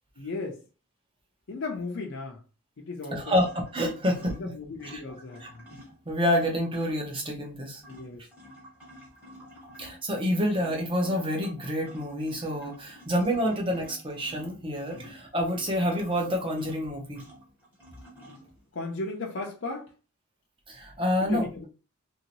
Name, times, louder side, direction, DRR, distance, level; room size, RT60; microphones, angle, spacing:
voice 1, 0.2-0.6 1.5-2.4 2.8-3.4 4.2-5.7 7.9-8.2 13.4-13.5 15.0-15.1 18.7-19.9 21.2-21.7, left 3 dB, 60° left, 0.5 m, -36 dB
voice 2, 3.1-4.5 6.1-7.8 9.8-17.2 20.7-21.7, equal, 25° right, 0.8 m, -28 dB
sound 1, 3.3-7.2 7.6-18.7, equal, 5° right, 1.2 m, -51 dB
3.0 x 2.7 x 2.9 m
head